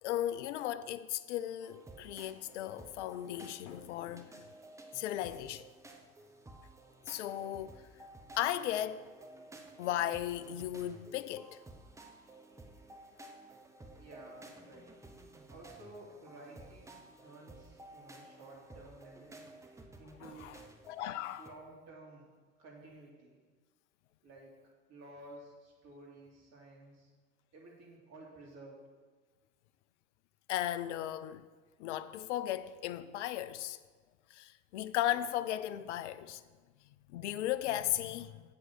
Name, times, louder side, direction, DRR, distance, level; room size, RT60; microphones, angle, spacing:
voice 1, 0.0-4.3 4.9-5.6 7.1-7.8 8.4-9.0 9.8-11.6 20.2-20.5 20.9-21.5 30.5-31.5 31.8-33.8 34.3-36.4 37.1-38.4, left 12 dB, 55° left, 0.5 m, -36 dB
sound 1, 1.6-21.5, right 2 dB, 5° right, 0.7 m, -54 dB
voice 2, 13.9-14.9 15.5-19.5 20.0-20.5 21.4-22.3 22.6-23.4 24.2-24.6 24.9-27.1 27.5-28.8, right 2 dB, 40° right, 2.6 m, -53 dB
7.7 x 5.4 x 5.8 m
figure-of-eight pair, 80°, 42 cm